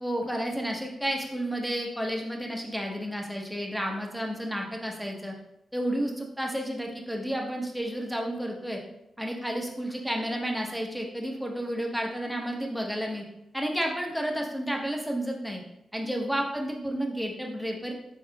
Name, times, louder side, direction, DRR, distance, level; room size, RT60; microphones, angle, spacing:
voice 1, 0.0-5.3 5.7-8.8 9.2-13.2 13.5-15.6 15.9-17.9, equal, ahead, 1 dB, 0.9 m, -31 dB
4.1 x 3.8 x 2.3 m, 0.85 s
cardioid pair, 60°, 0 cm